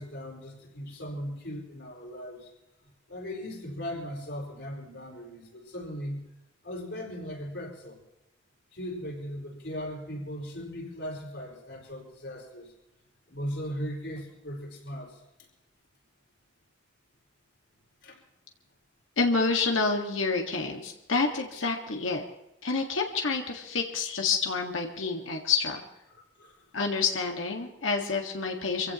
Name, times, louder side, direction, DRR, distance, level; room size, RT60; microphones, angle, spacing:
voice 1, 0.0-2.5 3.1-6.2 6.6-8.0 8.7-12.7 13.3-15.2 18.0-18.2 26.1-26.7, equal, 70° left, -1 dB, 5.2 m, -38 dB
voice 2, 19.2-22.2 22.6-25.8 26.7-28.9, left 4 dB, 90° left, 2 dB, 1.8 m, -28 dB
26.5 x 16.0 x 3.0 m, 0.92 s
head